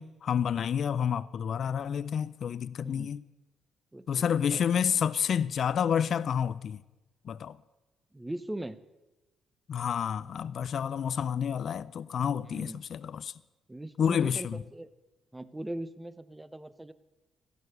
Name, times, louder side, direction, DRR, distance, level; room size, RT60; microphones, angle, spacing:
voice 1, 0.0-3.2 4.1-6.8 7.2-7.6 9.7-13.3 14.0-14.6, left 8 dB, 60° left, 0.4 m, -29 dB
voice 2, 2.8-3.1 3.9-4.6 8.1-8.8 12.4-12.8 13.7-14.9 15.3-16.9, right 1 dB, 10° right, 0.7 m, -40 dB
14.0 x 11.0 x 6.5 m
cardioid pair, 90°, 0 cm